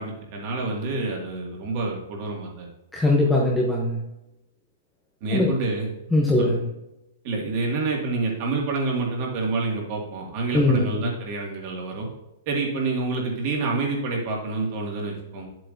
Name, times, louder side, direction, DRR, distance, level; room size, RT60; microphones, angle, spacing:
voice 1, 0.0-2.7 5.2-5.9 6.4-6.5 7.2-12.1 12.5-15.5, right 3 dB, 30° right, -1 dB, 2.0 m, -28 dB
voice 2, 2.9-4.0 5.3-5.5 6.1-6.6 10.5-11.0, left 2 dB, 5° left, -3 dB, 0.7 m, -21 dB
10.0 x 7.8 x 2.6 m, 0.92 s
hypercardioid pair, 175°, 0 cm